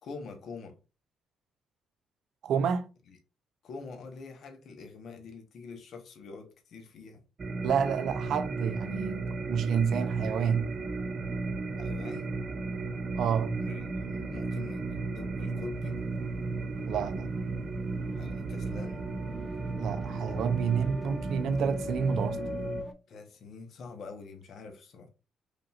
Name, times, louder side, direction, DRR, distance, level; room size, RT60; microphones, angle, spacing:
voice 1, 0.0-0.8 3.1-3.2 3.6-7.2 11.8-12.3 13.6-16.0 18.1-19.0 23.1-25.1, left 4 dB, 65° left, 1.1 m, -45 dB
voice 2, 2.4-2.9 7.6-10.7 13.2-13.6 16.8-17.3 19.8-22.4, right 7 dB, 75° right, 0.5 m, -29 dB
sound 1, 7.4-22.8, right 3 dB, 40° right, 0.8 m, -35 dB
sound 2, 17.1-22.9, left 2 dB, ahead, 0.7 m, -42 dB
5.0 x 2.8 x 2.4 m
cardioid pair, 90°, 0 cm